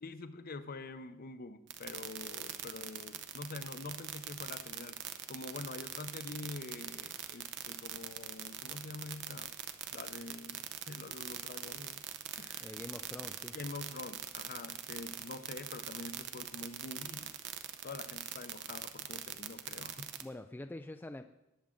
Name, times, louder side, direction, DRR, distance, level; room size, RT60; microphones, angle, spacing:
voice 1, 0.0-5.0 5.3-9.5 9.9-12.0 12.4-12.7 13.5-17.3 17.8-20.1, left 3 dB, 45° left, 11 dB, 0.7 m, -46 dB
sound 1, 1.7-20.2, right 10 dB, 55° right, 0.8 m, -42 dB
voice 2, 12.6-13.6 20.2-21.2, left 1 dB, 10° left, 7 dB, 0.3 m, -45 dB
19.5 x 7.4 x 3.8 m, 0.94 s
head